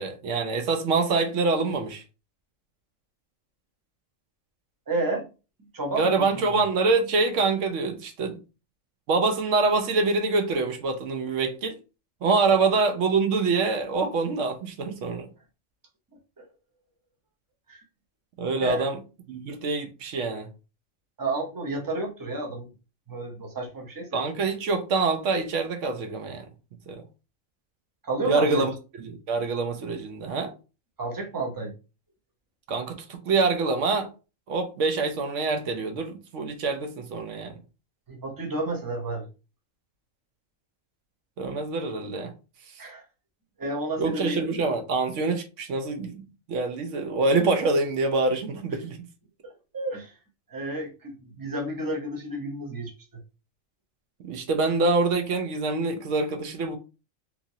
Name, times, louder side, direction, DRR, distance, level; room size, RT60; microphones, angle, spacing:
voice 1, 0.0-2.0 6.0-8.4 9.1-11.8 12.2-15.3 18.4-19.0 19.3-20.5 24.1-26.5 26.9-27.0 28.2-28.7 29.0-30.5 32.7-34.1 34.5-37.5 41.4-42.3 44.0-49.0 54.2-56.8, right 3 dB, 70° right, 0.9 m, -25 dB
voice 2, 4.9-5.3 5.7-6.5 16.4-16.5 17.7-17.8 18.6-18.9 21.2-22.7 23.1-24.2 28.0-28.7 31.0-31.7 38.1-39.3 42.8-43.0 43.6-44.4 49.4-50.1 50.5-53.2, right 2 dB, 25° right, 0.5 m, -31 dB
2.9 x 2.5 x 2.7 m
omnidirectional pair, 1.4 m